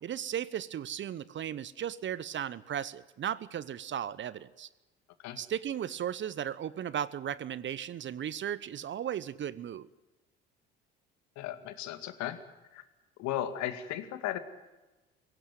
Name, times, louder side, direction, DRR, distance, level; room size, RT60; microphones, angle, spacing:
voice 1, 0.0-4.7 5.4-9.9, right 9 dB, 35° right, 19 dB, 0.9 m, -36 dB
voice 2, 11.4-12.4 12.7-12.8 13.2-14.4, left 12 dB, 60° left, 9 dB, 2.2 m, -35 dB
23.0 x 17.0 x 9.2 m, 1.1 s
hypercardioid pair, 60°, 32 cm